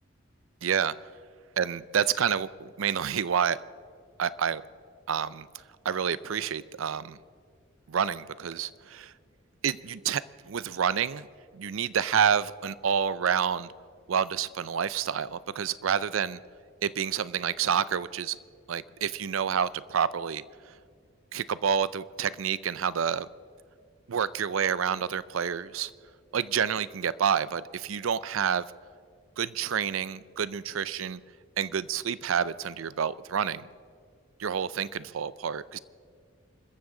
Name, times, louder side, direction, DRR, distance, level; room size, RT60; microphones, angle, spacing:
voice 1, 0.6-0.9 1.6-3.6 4.2-4.6 5.1-5.5 5.8-7.2 7.9-9.1 9.6-11.3 11.5-13.7 14.1-16.4 16.8-18.4 18.7-20.4 21.3-23.3 24.1-25.9 26.3-28.6 29.4-31.2 31.6-33.6 34.4-35.8, right 7 dB, 85° right, 18 dB, 0.5 m, -28 dB
26.0 x 14.5 x 3.8 m, 2.1 s
head